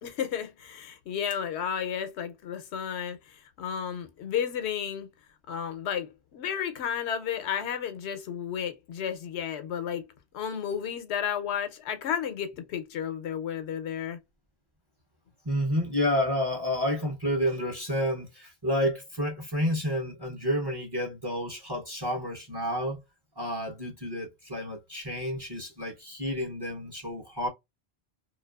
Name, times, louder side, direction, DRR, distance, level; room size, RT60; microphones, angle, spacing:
voice 1, 0.0-5.1 5.5-10.1 10.3-14.2, left 8 dB, 90° left, 0.9 m, -32 dB
voice 2, 15.4-23.0 23.4-27.5, equal, 30° right, 0.5 m, -30 dB
2.5 x 2.3 x 2.2 m
omnidirectional pair, 1.1 m